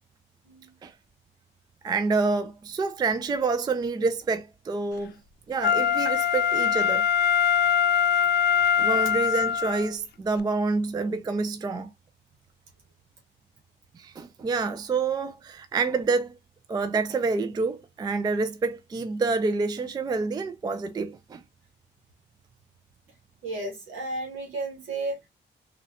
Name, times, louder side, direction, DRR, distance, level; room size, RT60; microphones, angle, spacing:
voice 1, 1.8-5.1 5.5-7.0 8.8-11.9 14.0-16.4 16.7-21.4, right 4 dB, 20° right, 0.3 m, -27 dB
Wind instrument woodwind instrument, 5.6-9.9 10.4-10.5, left 8 dB, 60° left, 0.4 m, -22 dB
voice 2, 23.4-25.3, right 2 dB, 80° right, 1.1 m, -33 dB
3.6 x 2.2 x 2.6 m
cardioid pair, 90°, 20 cm